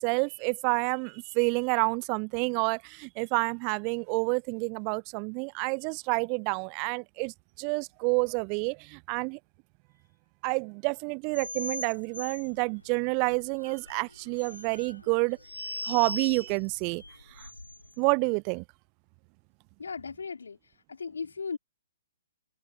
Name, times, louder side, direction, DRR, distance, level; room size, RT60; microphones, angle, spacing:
voice 1, 0.0-9.4 10.4-17.0 17.4-17.5 18.0-18.6, right 38 dB, 30° right, 0.4 m, -29 dB
sound 1, 11.3-18.0, left 2 dB, 85° left, 6.7 m, -41 dB
voice 2, 19.8-20.6 20.9-21.6, left 5 dB, 65° left, 4.9 m, -36 dB
figure-of-eight pair, 120°, 0 cm